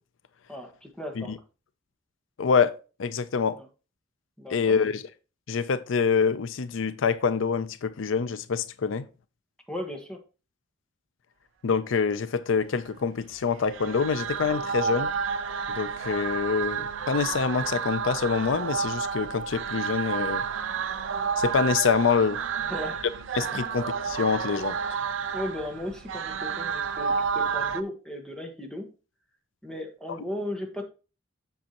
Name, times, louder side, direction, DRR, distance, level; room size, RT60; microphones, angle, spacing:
voice 1, 0.5-1.3 3.5-3.6 4.4-4.8 9.7-10.2 22.6-23.0 23.5-23.7 25.3-28.9 29.6-30.8, left 1 dB, 5° left, 1.4 m, -36 dB
voice 2, 2.4-2.7 3.0-3.6 4.5-5.0 5.5-9.1 11.6-15.1 15.7-20.4 21.4-22.4 23.3-24.8, left 5 dB, 85° left, 0.5 m, -26 dB
sound 1, 13.5-27.8, right 6 dB, 85° right, 0.6 m, -30 dB
7.8 x 6.7 x 2.9 m
head